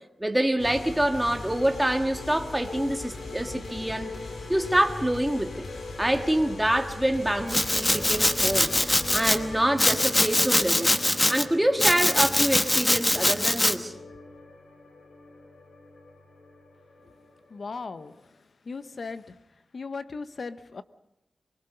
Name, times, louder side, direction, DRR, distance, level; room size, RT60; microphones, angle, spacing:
voice 1, 0.2-4.1 4.5-5.6 6.0-11.0 11.3-13.9, right 1 dB, 5° right, 5 dB, 1.7 m, -26 dB
sound 1, 0.6-18.2, left 3 dB, 75° left, 3.8 m, -40 dB
Domestic sounds home sounds, 7.5-9.4 9.8-11.4 11.8-13.7, left 1 dB, 15° left, 1.1 m, -23 dB
voice 2, 17.5-18.1 18.7-19.2 19.7-20.8, left 4 dB, 55° left, 12 dB, 0.9 m, -36 dB
24.0 x 22.0 x 5.6 m, 0.90 s
wide cardioid pair, 120°, 0 cm